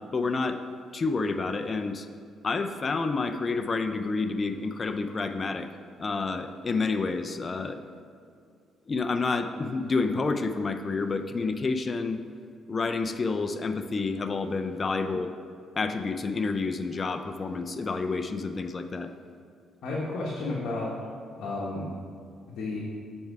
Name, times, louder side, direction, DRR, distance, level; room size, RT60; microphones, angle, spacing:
voice 1, 0.1-0.6 0.9-2.1 2.4-5.7 6.0-7.8 8.9-12.2 12.7-15.3 15.8-19.1, left 4 dB, 35° left, 8 dB, 0.4 m, -29 dB
voice 2, 19.8-21.0 21.4-21.9 22.5-22.8, left 2 dB, 70° left, -5 dB, 1.1 m, -32 dB
7.7 x 4.6 x 4.7 m, 2.4 s
cardioid pair, 90°, 0 cm